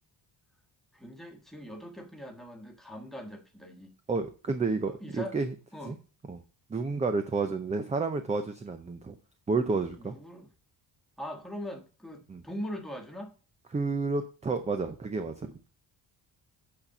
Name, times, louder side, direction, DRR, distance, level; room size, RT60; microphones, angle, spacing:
voice 1, 0.9-3.9 4.9-5.4 5.7-6.0 10.0-10.5 11.2-13.3, equal, ahead, 2 dB, 1.4 m, -41 dB
voice 2, 4.1-5.5 5.9-6.0 6.3-6.4 6.7-9.2 9.5-10.2 12.3-12.4 13.7-15.7, right 4 dB, 15° right, 8 dB, 0.5 m, -30 dB
8.5 x 4.2 x 6.5 m, 0.36 s
cardioid pair, 160°, 42 cm